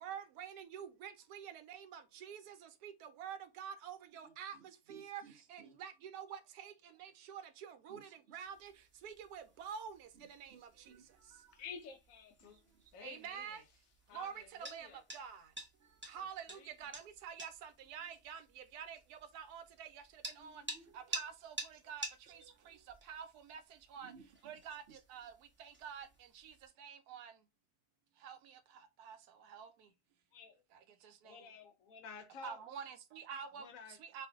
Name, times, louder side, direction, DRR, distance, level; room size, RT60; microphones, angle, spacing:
voice 1, 0.0-5.2 5.5-8.7 9.0-10.9 13.0-13.6 14.1-15.5 16.1-20.6 20.9-22.0 22.3-23.6 23.9-24.1 24.4-25.3 25.6-27.3 28.2-29.9 30.7-31.4 32.4-34.3, right 8 dB, 85° right, 1.1 m, -48 dB
voice 2, 4.2-5.8 7.9-8.4 10.2-11.6 12.4-12.9 15.8-16.2 20.4-21.0 22.3-22.9 24.0-24.5 24.9-25.0, right 5 dB, 65° right, 0.6 m, -61 dB
sound 1, 8.4-26.7, right 1 dB, 20° right, 0.3 m, -51 dB
voice 3, 11.5-12.6 12.9-13.6 14.1-15.0 16.5-16.7 30.3-30.6 31.2-32.6 33.5-34.0, left 6 dB, 70° left, 1.0 m, -52 dB
2.6 x 2.4 x 3.4 m
omnidirectional pair, 1.6 m